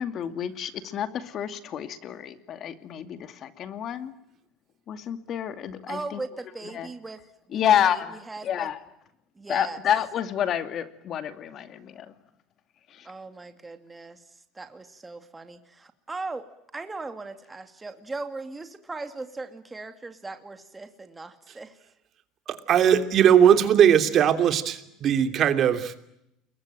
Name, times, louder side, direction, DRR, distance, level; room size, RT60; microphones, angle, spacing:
voice 1, 0.0-4.1 4.9-6.2 6.7-6.9 7.5-8.0 8.5-8.7 9.5-12.1, left 9 dB, 40° left, 10 dB, 2.4 m, -28 dB
voice 2, 5.9-7.2 7.5-8.7 9.4-9.8 13.0-14.2 14.5-16.5 16.7-21.8, right 3 dB, 15° right, 8 dB, 2.5 m, -38 dB
voice 3, 22.5-25.9, right 9 dB, 40° right, 9 dB, 2.9 m, -19 dB
29.5 x 22.5 x 9.1 m, 0.81 s
cardioid pair, 135°, 0 cm